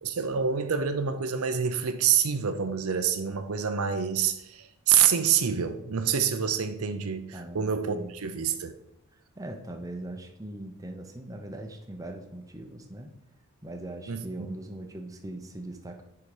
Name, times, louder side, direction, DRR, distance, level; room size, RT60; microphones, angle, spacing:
voice 1, 0.0-8.7 14.1-14.5, right 7 dB, 70° right, 0.6 m, -27 dB
voice 2, 7.3-8.1 9.1-13.1 13.6-16.0, right 1 dB, 15° right, 0.7 m, -40 dB
6.8 x 4.8 x 4.9 m
head